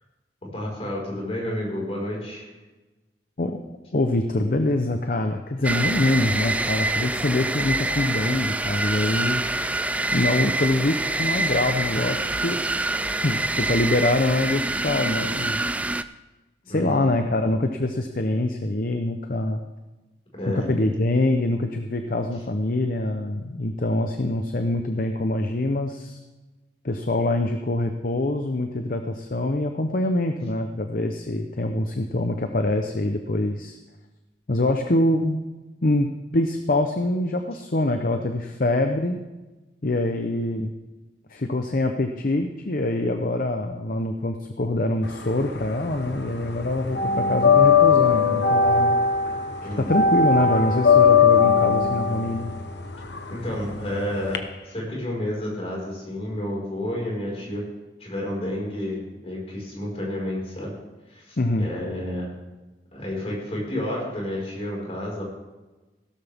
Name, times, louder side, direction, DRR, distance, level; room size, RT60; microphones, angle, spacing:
voice 1, 0.5-2.5 16.7-17.0 20.3-20.7 49.6-50.1 53.3-57.6 58.0-60.7 61.1-62.3 62.9-65.2, left 1 dB, 35° left, -3 dB, 5.0 m, -30 dB
voice 2, 3.9-9.6 10.1-12.6 13.2-15.8 16.7-19.6 20.7-26.2 26.8-33.8 34.5-35.4 35.8-36.1 36.3-39.2 39.8-40.7 41.3-49.0 49.6-52.5 61.4-61.7, left 1 dB, 50° left, 5 dB, 0.8 m, -24 dB
sound 1, 5.6-16.0, right 2 dB, 10° right, 0.3 m, -26 dB
sound 2, 45.1-46.2 46.5-54.4, left 5 dB, 75° left, 1.1 m, -19 dB
16.0 x 13.0 x 3.6 m, 1.2 s
head